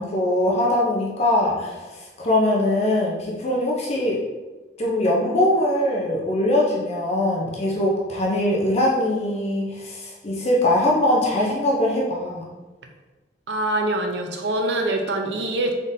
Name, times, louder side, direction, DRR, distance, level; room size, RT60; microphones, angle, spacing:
voice 1, 0.0-1.9 2.2-4.2 4.8-12.4, left 1 dB, 35° left, -4 dB, 0.6 m, -22 dB
voice 2, 13.5-15.7, right 1 dB, 70° right, 3 dB, 0.5 m, -24 dB
3.7 x 3.7 x 2.6 m, 1.2 s
head